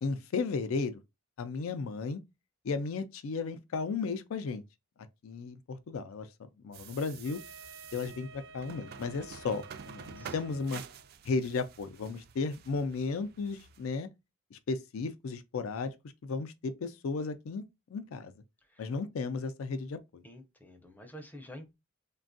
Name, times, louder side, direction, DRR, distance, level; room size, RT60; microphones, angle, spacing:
voice 1, 0.0-0.9 1.4-2.2 2.6-4.6 5.2-6.3 6.6-7.4 7.9-10.8 11.3-14.1 14.5-15.9 16.2-17.6 17.9-18.3 18.8-20.2, left 4 dB, 80° left, 0.4 m, -34 dB
sound 1, 6.7-13.9, right 7 dB, 50° right, 0.3 m, -49 dB
Wind instrument woodwind instrument, 7.2-11.1, right 3 dB, 90° right, 0.8 m, -52 dB
voice 2, 10.2-10.6 18.6-18.9 20.2-21.7, equal, 10° left, 0.5 m, -49 dB
3.3 x 2.2 x 2.5 m
head